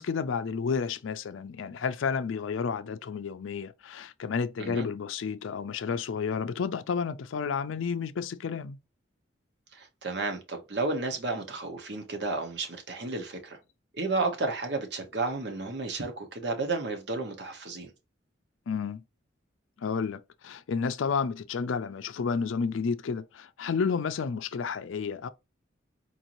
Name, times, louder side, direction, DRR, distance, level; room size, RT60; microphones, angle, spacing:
voice 1, 0.0-8.8 18.7-19.0 19.8-25.3, left 5 dB, 85° left, 0.4 m, -31 dB
voice 2, 9.7-13.6 13.9-17.9, right 3 dB, 60° right, 1.0 m, -32 dB
4.5 x 2.6 x 2.9 m
head